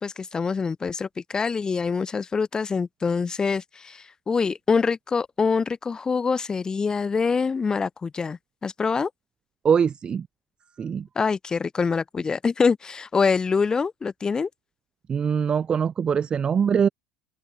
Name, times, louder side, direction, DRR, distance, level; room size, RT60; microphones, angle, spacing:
voice 1, 0.0-9.1 11.2-14.5, left 5 dB, 20° left, 0.9 m, -25 dB
voice 2, 9.6-10.3 10.8-11.1 15.1-16.9, right 7 dB, 30° right, 0.8 m, -22 dB
open air
figure-of-eight pair, 70°, 3 cm